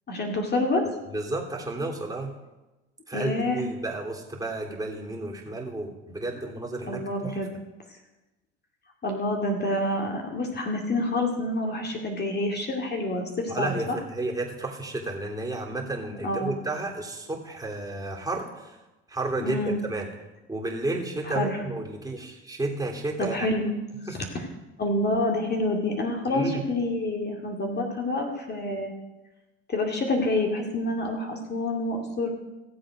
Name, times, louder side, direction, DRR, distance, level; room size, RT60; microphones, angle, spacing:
voice 1, 0.1-0.8 3.1-3.6 6.9-7.5 9.0-14.0 16.2-16.5 19.4-19.8 21.3-21.6 23.2-23.7 24.8-28.9 29.7-32.3, left 2 dB, 30° left, 1 dB, 2.3 m, -27 dB
voice 2, 1.0-2.3 3.1-7.4 13.5-18.8 19.1-20.1 20.5-23.5 24.1-24.2 26.3-26.6, right 2 dB, 10° right, -1 dB, 3.1 m, -32 dB
15.5 x 7.8 x 5.1 m, 1.1 s
hypercardioid pair, 65°, 33 cm